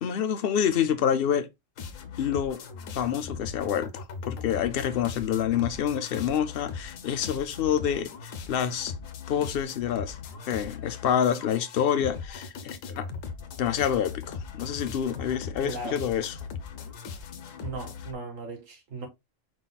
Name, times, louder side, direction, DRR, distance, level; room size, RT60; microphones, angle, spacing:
voice 1, 0.0-1.5 2.2-2.6 2.9-8.9 9.3-10.2 10.5-13.1 13.6-16.4, left 9 dB, 60° left, 0.7 m, -27 dB
sound 1, 1.8-18.1, left 6 dB, 85° left, 1.1 m, -39 dB
voice 2, 15.6-16.0 17.6-19.1, right 3 dB, 90° right, 1.8 m, -37 dB
4.9 x 4.0 x 2.2 m
omnidirectional pair, 1.3 m